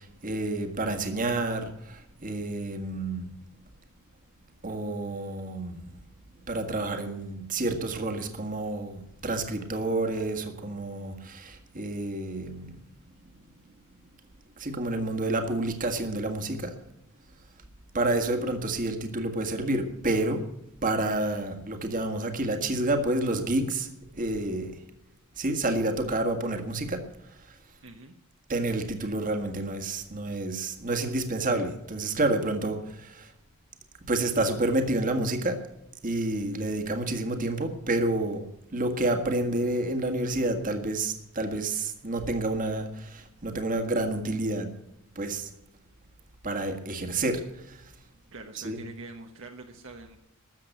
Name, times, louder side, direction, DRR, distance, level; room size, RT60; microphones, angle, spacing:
voice 1, 0.0-3.3 4.6-5.8 6.5-12.8 14.6-16.7 17.9-20.4 20.8-23.9 24.1-24.8 25.4-27.0 28.5-33.3 34.1-35.6 36.0-38.5 38.7-44.7 45.1-45.5 46.4-47.4 47.7-47.8 48.6-48.8, right 2 dB, 40° right, 5 dB, 1.8 m, -29 dB
voice 2, 27.8-28.1 48.3-50.2, right 3 dB, 60° right, 3 dB, 1.2 m, -44 dB
13.5 x 7.6 x 9.1 m, 0.88 s
head